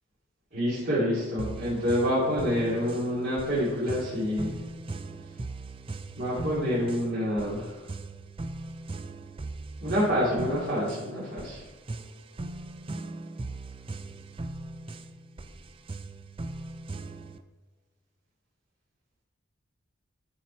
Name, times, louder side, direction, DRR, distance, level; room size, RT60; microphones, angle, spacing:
voice 1, 0.5-4.6 6.2-7.7 9.8-11.6, equal, 50° right, -10 dB, 2.5 m, -27 dB
sound 1, 1.4-17.4, right 2 dB, 25° right, 0.4 m, -39 dB
11.5 x 4.3 x 4.4 m, 1.4 s
head